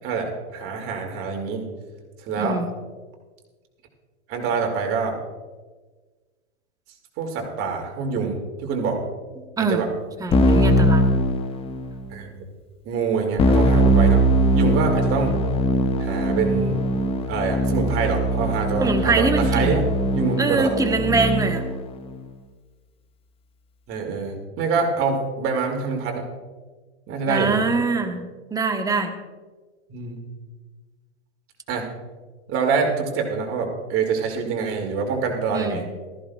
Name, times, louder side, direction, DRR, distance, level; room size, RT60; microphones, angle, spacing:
voice 1, 0.0-1.7 2.3-2.6 4.3-5.2 7.2-9.0 9.6-9.9 12.1-12.4 12.8-15.4 16.0-16.8 17.3-19.8 20.1-20.7 23.9-26.2 27.1-27.6 29.9-30.2 31.7-31.9 32.5-35.8, right 5 dB, 35° right, 2 dB, 2.5 m, -25 dB
voice 2, 9.4-9.8 10.2-11.1 18.8-19.8 20.4-21.6 27.3-28.2 28.5-29.1 35.5-35.8, right 3 dB, 10° right, 5 dB, 1.0 m, -23 dB
Keyboard (musical), 10.3-12.0 13.4-21.8, equal, 15° left, 0.6 m, -21 dB
16.5 x 14.0 x 2.4 m, 1.4 s
hypercardioid pair, 125°, 38 cm